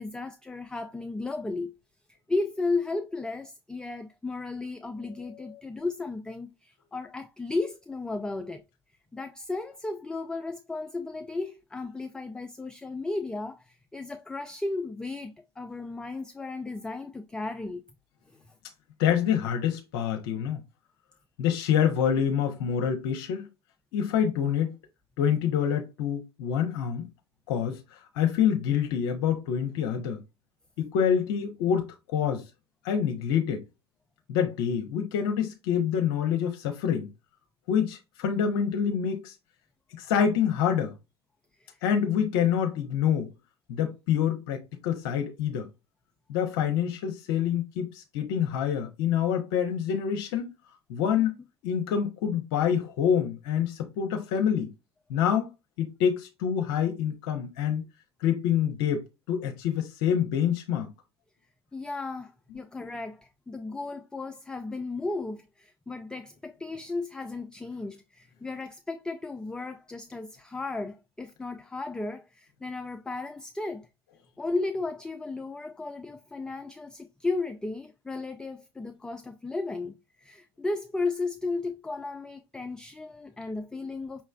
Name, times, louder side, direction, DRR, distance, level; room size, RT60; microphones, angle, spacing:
voice 1, 0.0-1.7 2.3-8.6 9.1-17.8 41.6-41.8 61.7-73.9 74.4-84.2, left 3 dB, 5° left, 0.3 m, -34 dB
voice 2, 19.0-20.6 21.4-23.5 23.9-24.8 25.2-27.1 27.5-30.2 30.8-32.4 32.8-33.6 34.3-37.1 37.7-39.3 40.0-40.9 41.8-43.3 43.7-45.7 46.3-50.5 50.9-51.3 51.6-54.7 55.1-55.5 55.8-57.8 58.2-59.0 59.3-60.9, left 8 dB, 60° left, 0.6 m, -26 dB
5.5 x 3.1 x 2.3 m
figure-of-eight pair, 75°, 14 cm